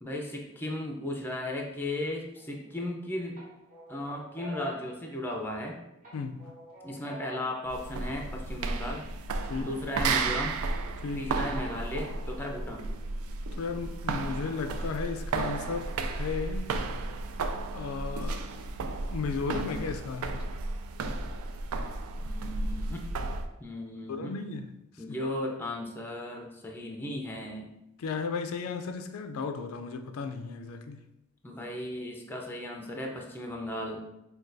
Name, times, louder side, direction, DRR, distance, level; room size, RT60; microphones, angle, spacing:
voice 1, 0.0-3.4 3.9-5.8 6.8-9.1 9.5-10.6 11.1-12.9 22.2-23.1 23.6-24.3 25.0-27.7 31.4-34.0, left 1 dB, 10° left, 0.5 m, -36 dB
sound 1, 2.4-2.9 3.4-5.6 6.0-7.6, left 1 dB, 40° right, 1.5 m, -47 dB
voice 2, 6.1-6.5 9.5-9.7 11.0-11.3 13.6-16.8 17.7-18.5 19.1-20.5 24.1-24.7 28.0-31.0, left 5 dB, 75° left, 0.4 m, -35 dB
sound 2, 7.7-23.5, right 3 dB, 80° right, 0.4 m, -33 dB
6.1 x 2.3 x 2.6 m
head